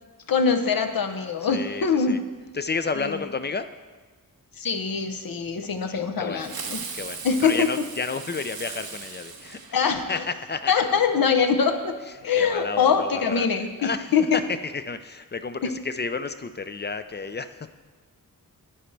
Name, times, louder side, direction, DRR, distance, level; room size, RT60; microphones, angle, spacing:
voice 1, 0.3-2.2 3.0-3.2 4.6-6.8 7.2-7.7 9.7-10.2 10.7-11.9 12.2-14.4 15.6-15.7, left 6 dB, 70° left, 7 dB, 0.8 m, -23 dB
voice 2, 1.5-2.2 2.5-3.7 5.8-6.5 6.9-9.6 10.1-10.9 12.1-13.5 13.8-17.7, left 4 dB, 30° left, 11 dB, 0.4 m, -31 dB
Fireworks, 6.4-10.3, right 5 dB, 80° right, 1.0 m, -38 dB
11.0 x 9.0 x 3.3 m, 1.4 s
wide cardioid pair, 110°, 36 cm